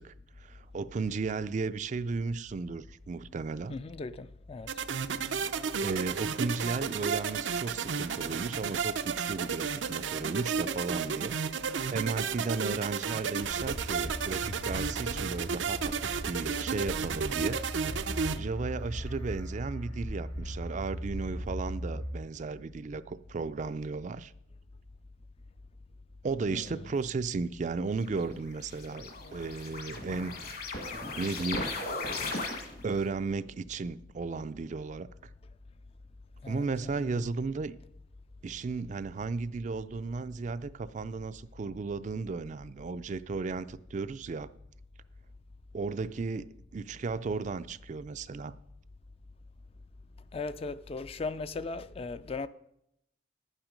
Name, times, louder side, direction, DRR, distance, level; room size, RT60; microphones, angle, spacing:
voice 1, 0.0-3.8 5.8-11.4 11.9-17.6 18.4-24.3 26.2-30.4 31.2-31.7 32.8-35.1 36.4-37.8 38.4-44.5 45.7-48.6, right 4 dB, 40° right, 0.4 m, -35 dB
voice 2, 3.7-4.7 26.5-26.8 36.4-36.7 37.0-37.1 50.3-52.5, left 3 dB, 35° left, 0.4 m, -38 dB
sound 1, 4.7-18.4, right 6 dB, 90° right, 0.6 m, -33 dB
sound 2, 13.4-22.1, equal, 85° left, 4.2 m, -38 dB
sound 3, 28.0-33.0, left 3 dB, 55° left, 1.7 m, -37 dB
11.0 x 8.9 x 5.1 m
head